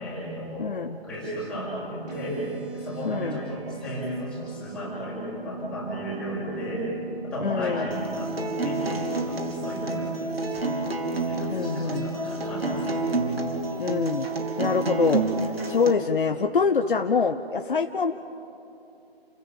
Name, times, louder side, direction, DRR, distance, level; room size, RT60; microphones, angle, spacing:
voice 1, 0.0-0.8 1.0-2.4 2.7-6.9 7.2-8.3 8.6-10.6 11.2-13.1, equal, 5° left, -8 dB, 6.3 m, -34 dB
voice 2, 0.6-1.0 3.0-3.4 7.4-7.9 11.5-12.1 13.8-14.3 14.6-15.2 15.7-18.1, left 5 dB, 55° left, 7 dB, 0.9 m, -25 dB
sound 1, 2.1-10.1, right 7 dB, 40° right, 4.3 m, -42 dB
Acoustic guitar, 7.9-15.9, right 2 dB, 70° right, 3.0 m, -29 dB
29.5 x 16.0 x 7.3 m, 2.8 s
figure-of-eight pair, 155°, 31 cm